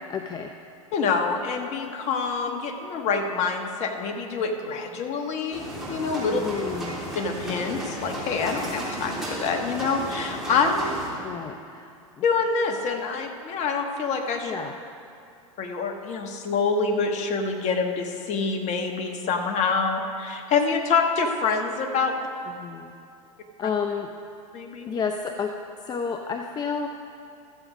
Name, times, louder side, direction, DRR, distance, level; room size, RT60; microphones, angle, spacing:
voice 1, 0.1-0.5 6.3-6.9 11.2-11.9 12.2-12.3 14.4-14.8 22.5-23.0 23.6-24.1 24.9-26.9, left 6 dB, 20° left, 5 dB, 0.5 m, -31 dB
voice 2, 0.9-6.4 7.1-10.9 12.2-14.5 15.6-22.3 23.6-23.7 24.5-24.9, left 4 dB, 40° left, 4 dB, 1.3 m, -26 dB
sound 1, 5.5-11.1, equal, ahead, 3.2 m, -34 dB
13.5 x 7.8 x 5.0 m, 2.5 s
hypercardioid pair, 100°, 18 cm